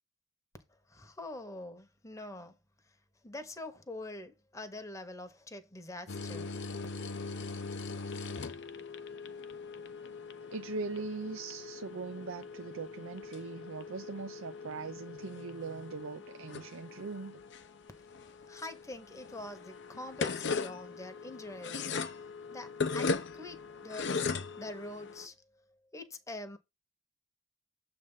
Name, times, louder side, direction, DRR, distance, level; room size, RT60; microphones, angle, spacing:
voice 1, 0.7-2.6 2.9-3.0 3.2-6.5 18.5-21.9 22.5-26.6, left 2 dB, 15° left, 0.9 m, -45 dB
sound 1, 6.1-25.3, left 4 dB, 60° left, 0.6 m, -39 dB
voice 2, 10.5-17.4, right 4 dB, 75° right, 0.5 m, -41 dB
7.4 x 3.3 x 5.5 m
head